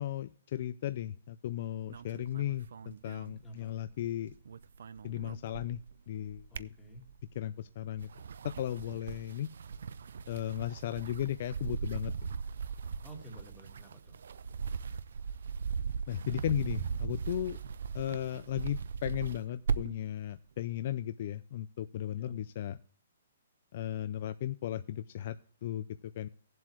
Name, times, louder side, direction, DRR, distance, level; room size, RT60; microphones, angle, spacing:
voice 1, 0.0-4.3 5.0-5.8 6.1-6.7 7.3-8.1 8.4-9.5 10.3-12.1 16.1-17.6 17.9-22.8 23.7-26.3, left 11 dB, 40° left, 12 dB, 0.4 m, -36 dB
sound 1, 1.9-4.1 4.3-5.9 6.3-7.3 7.9-20.1, right 6 dB, 70° right, 0.5 m, -39 dB
voice 2, 3.4-3.8 6.5-7.1 13.0-14.2 22.1-22.4, right 1 dB, 10° left, 0 dB, 1.6 m, -50 dB
17.5 x 7.6 x 3.0 m, 0.42 s
hypercardioid pair, 165°, 0 cm